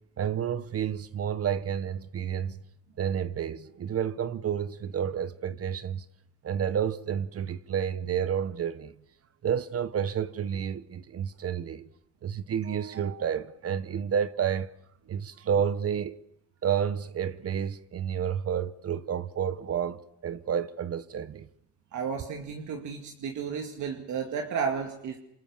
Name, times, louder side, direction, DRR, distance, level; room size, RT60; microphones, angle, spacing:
voice 1, 0.2-2.6 3.0-6.0 6.4-8.9 9.4-11.9 12.2-14.7 15.1-16.2 16.6-21.5, right 8 dB, 50° right, 1.0 m, -30 dB
voice 2, 21.9-25.2, right 6 dB, 70° right, 2.4 m, -33 dB
27.0 x 24.0 x 7.2 m
cardioid pair, 90°, 30 cm